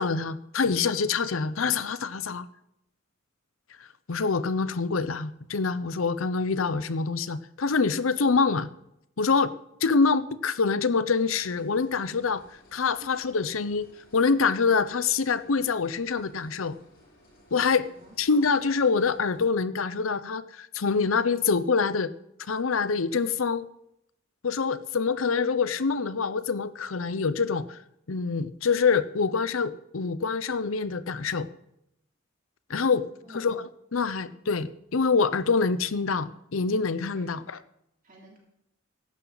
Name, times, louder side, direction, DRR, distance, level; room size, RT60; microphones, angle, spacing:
voice 1, 0.0-2.5 4.1-8.7 9.2-9.5 9.8-12.4 12.7-16.8 17.5-17.9 18.2-22.1 22.5-23.7 24.4-27.8 28.1-31.5 32.7-33.0 33.3-37.6, left 5 dB, 85° left, 14 dB, 0.7 m, -25 dB
sound 1, 11.0-19.4, equal, 50° left, 6.9 m, -58 dB
voice 2, 17.8-18.2 33.0-33.5 37.1-37.3 38.0-38.4, right 1 dB, 45° right, -1 dB, 3.2 m, -52 dB
15.5 x 12.0 x 4.0 m, 0.79 s
head